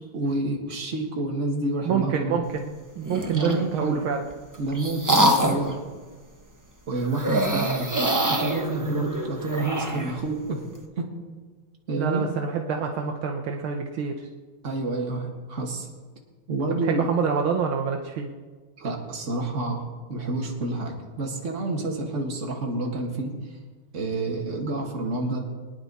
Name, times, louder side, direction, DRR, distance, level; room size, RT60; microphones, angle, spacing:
voice 1, 0.1-2.4 3.3-4.0 4.6-5.8 6.9-8.0 8.3-10.6 11.0-11.1 11.9-12.3 14.6-15.9 16.5-17.1 18.8-23.6 23.9-25.4, right 2 dB, 35° right, 0 dB, 2.1 m, -29 dB
voice 2, 1.8-4.2 12.0-14.3 16.8-18.3, right 6 dB, 70° right, 2 dB, 1.7 m, -27 dB
sound 1, 3.0-3.6 4.3-5.7 7.1-10.2, right 1 dB, 15° right, 0.6 m, -25 dB
23.0 x 10.0 x 4.1 m, 1.4 s
omnidirectional pair, 2.4 m